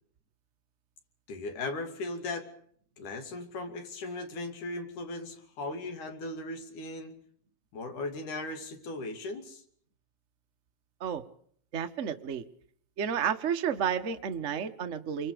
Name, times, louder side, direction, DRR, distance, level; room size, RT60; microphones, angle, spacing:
voice 1, 1.3-2.5 3.0-7.1 7.7-9.6, left 2 dB, 85° left, 6 dB, 4.2 m, -37 dB
voice 2, 11.7-12.4 13.0-15.3, right 8 dB, 80° right, 7 dB, 0.6 m, -31 dB
28.0 x 23.5 x 5.1 m, 0.62 s
omnidirectional pair, 3.5 m